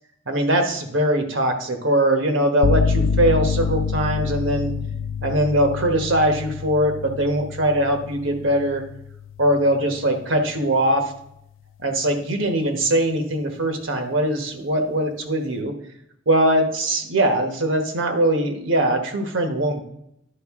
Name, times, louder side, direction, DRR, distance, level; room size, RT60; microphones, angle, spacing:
voice 1, 0.3-4.7 5.2-8.8 9.4-11.0 11.8-15.7 16.3-19.8, right 1 dB, 75° right, 4 dB, 1.2 m, -21 dB
sound 1, 2.6-10.3, left 5 dB, 70° left, 0.4 m, -27 dB
10.5 x 4.9 x 3.6 m, 0.76 s
head